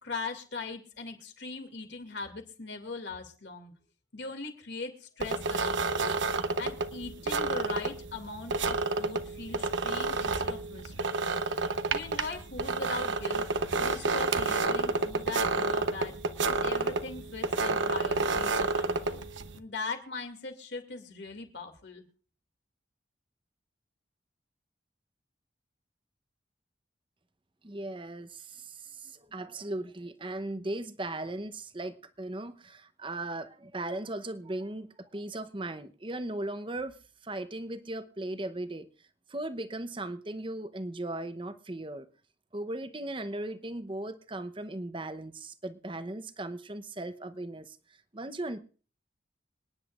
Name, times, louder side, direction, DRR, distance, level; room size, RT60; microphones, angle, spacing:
voice 1, 0.0-3.7 4.1-6.1 6.6-11.4 11.7-13.5 13.8-16.1 16.4-19.3 19.5-22.1, left 3 dB, 70° left, 2.4 m, -40 dB
sound 1, 5.2-19.6, right 3 dB, 85° right, 0.9 m, -30 dB
voice 2, 27.6-37.0 37.2-38.9 39.3-42.1 42.5-47.8 48.1-48.6, right 1 dB, 25° right, 0.8 m, -37 dB
27.0 x 10.0 x 2.5 m
head